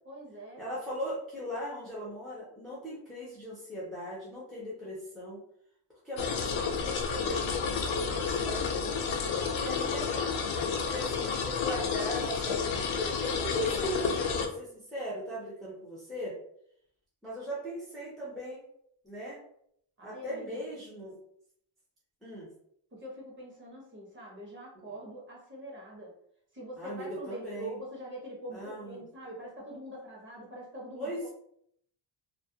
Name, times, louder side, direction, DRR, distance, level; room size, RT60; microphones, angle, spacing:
voice 1, 0.1-0.6 10.6-11.1 20.0-20.6 22.9-26.1 26.5-31.3, right 1 dB, 25° right, -3 dB, 0.7 m, -44 dB
voice 2, 0.6-5.4 6.0-10.1 10.8-16.3 17.2-18.7 19.0-19.4 20.0-21.2 22.2-22.5 26.8-27.8 28.5-29.0 30.9-31.3, equal, ahead, -7 dB, 0.4 m, -38 dB
sound 1, 6.2-14.5, left 5 dB, 85° left, 0.5 m, -31 dB
2.4 x 2.0 x 2.6 m, 0.70 s
cardioid pair, 160°, 45 cm